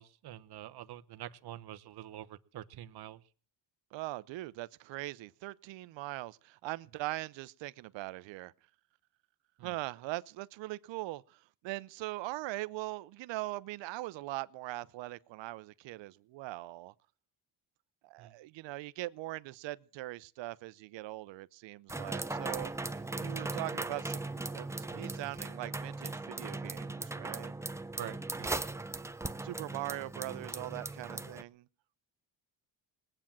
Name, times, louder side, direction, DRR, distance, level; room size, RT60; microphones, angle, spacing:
voice 1, 0.0-3.2 9.6-9.7 18.2-18.3 28.0-28.5, right 13 dB, 60° right, 1.0 m, -46 dB
voice 2, 3.9-8.5 9.6-16.9 18.0-22.7 23.2-27.5 29.4-31.7, right 18 dB, 85° right, 0.8 m, -41 dB
sound 1, 21.9-31.4, right 2 dB, 5° right, 0.7 m, -38 dB
19.5 x 8.9 x 7.4 m
cardioid pair, 105°, 43 cm